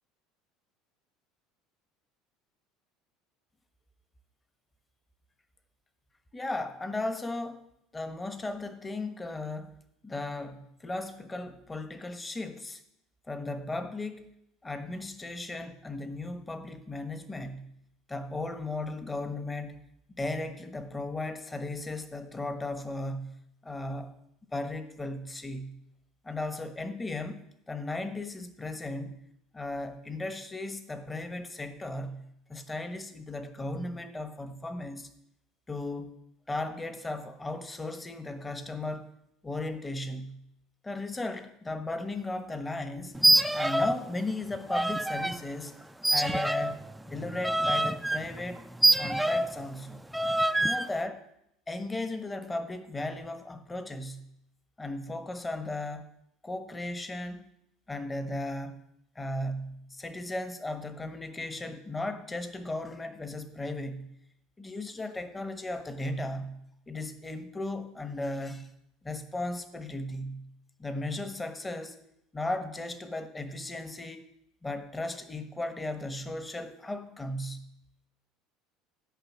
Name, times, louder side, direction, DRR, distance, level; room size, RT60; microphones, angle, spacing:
voice 1, 6.3-7.7 7.9-9.8 10.0-12.8 13.3-14.3 14.6-17.7 18.1-19.9 20.2-23.4 23.6-24.1 24.5-25.8 26.2-29.2 29.5-35.1 35.7-36.2 36.5-39.1 39.4-40.4 40.8-43.2 43.5-45.8 46.1-48.6 48.9-50.0 50.6-51.2 51.7-54.3 54.8-56.1 56.4-57.5 57.9-58.8 59.1-64.1 64.6-68.7 69.0-70.5 70.8-72.0 72.3-74.2 74.6-77.7, left 2 dB, 15° left, 10 dB, 1.2 m, -36 dB
sound 1, 43.1-44.0 44.3-45.4 46.0-49.6 50.1-50.9, right 1 dB, 5° right, 0.5 m, -26 dB
12.5 x 5.4 x 7.3 m, 0.79 s
supercardioid pair, 95°, 0 cm